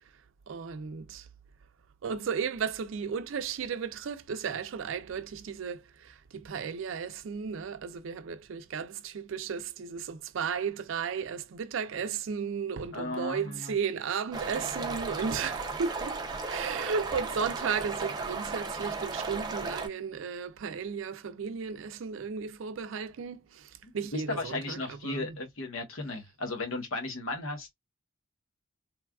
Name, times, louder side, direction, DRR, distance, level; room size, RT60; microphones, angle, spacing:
voice 1, 0.5-1.3 2.0-16.2 16.5-24.8 25.0-25.3, right 6 dB, 75° right, 0.4 m, -34 dB
voice 2, 12.9-13.8 23.8-27.7, left 2 dB, 85° left, 0.9 m, -35 dB
sound 1, 14.3-19.9, right 3 dB, 20° right, 0.4 m, -35 dB
3.2 x 2.3 x 2.3 m
head